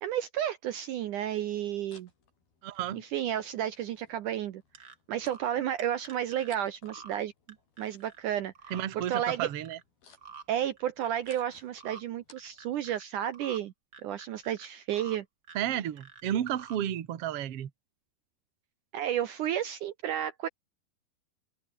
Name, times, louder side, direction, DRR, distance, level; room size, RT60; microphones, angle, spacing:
voice 1, 0.0-2.1 3.1-7.3 7.8-8.5 8.9-9.5 10.5-13.7 14.0-15.3 18.9-20.5, right 11 dB, 65° right, 2.3 m, -32 dB
sound 1, 1.5-12.9, left 4 dB, 85° left, 8.9 m, -63 dB
voice 2, 2.6-3.0 8.7-9.8 15.5-17.7, right 11 dB, 50° right, 2.1 m, -32 dB
sound 2, 4.7-4.9 5.3-5.5 5.8-6.5 6.9-7.2 7.5-8.2 8.5-8.8 9.1-9.8 10.2-10.4 10.8-11.4 11.8-12.0 12.4-13.0 13.3-13.6 13.9-15.2 15.4-16.2 16.5-16.8, right 5 dB, 35° right, 2.3 m, -49 dB
open air
omnidirectional pair, 4.2 m